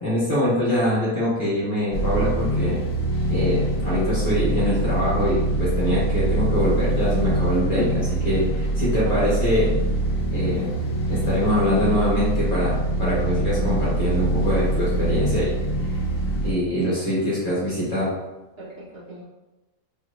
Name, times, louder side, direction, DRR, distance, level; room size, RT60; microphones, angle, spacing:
voice 1, 0.0-2.8 3.3-9.7 10.3-10.8 11.1-15.5 16.4-18.1, equal, 30° left, -10 dB, 1.4 m, -24 dB
sound 1, 1.9-16.5, right 1 dB, 85° left, 1.2 m, -24 dB
voice 2, 7.5-8.0 9.0-9.4 18.6-19.2, equal, 50° right, -9 dB, 1.3 m, -35 dB
3.7 x 3.3 x 2.5 m, 1.0 s
omnidirectional pair, 1.4 m